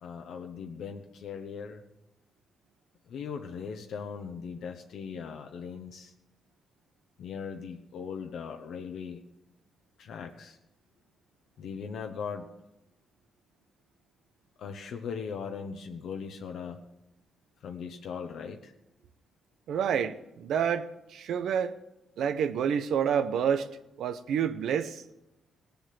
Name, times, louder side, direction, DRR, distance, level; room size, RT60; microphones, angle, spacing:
voice 1, 0.0-1.8 3.1-6.1 7.2-9.2 10.0-10.6 11.6-12.5 14.6-16.8 17.6-18.7, left 6 dB, 80° left, 1.1 m, -39 dB
voice 2, 19.7-21.8 22.2-23.7 24.0-25.0, right 8 dB, 85° right, 0.8 m, -28 dB
18.5 x 7.0 x 7.7 m
cardioid pair, 120°, 0 cm